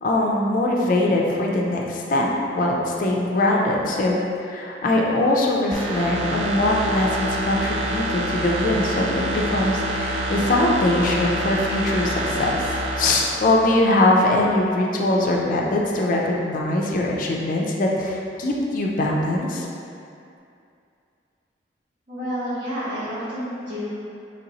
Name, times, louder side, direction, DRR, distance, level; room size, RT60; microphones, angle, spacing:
voice 1, 0.0-12.7 13.0-19.7, left 1 dB, 45° left, -1 dB, 0.4 m, -22 dB
sound 1, 5.7-14.4 14.7-14.8, right 1 dB, 30° right, 0.3 m, -27 dB
voice 2, 22.1-23.9, equal, 50° right, -14 dB, 0.9 m, -29 dB
3.1 x 2.8 x 4.0 m, 2.5 s
head